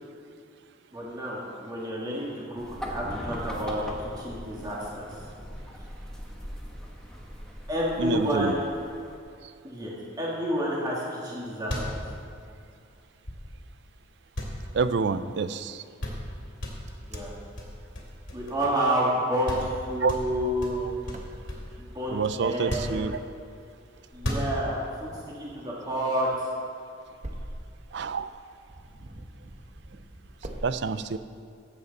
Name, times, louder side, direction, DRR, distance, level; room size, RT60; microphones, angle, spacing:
voice 1, 0.9-5.1 7.7-8.6 9.6-12.0 17.1-17.3 18.3-20.9 21.8-23.0 24.1-25.1 25.4-26.5, equal, 20° right, -5 dB, 1.9 m, -29 dB
sound 1, 2.6-9.2, equal, 5° left, 1.1 m, -40 dB
voice 2, 8.0-8.5 14.7-15.8 20.0-20.1 22.1-23.2 27.9-28.3 30.6-31.2, right 5 dB, 60° right, 12 dB, 0.4 m, -27 dB
sound 2, 11.6-13.8 14.3-15.4 15.7-15.8 16.0-16.3 16.6-18.8 19.1-19.2 19.5-19.8 20.1-21.8 22.5-23.5 24.1-24.9, equal, 70° left, 2.8 m, -34 dB
Wind, 16.5-30.6, right 1 dB, 35° right, 0.9 m, -47 dB
15.5 x 8.0 x 4.0 m, 2.4 s
head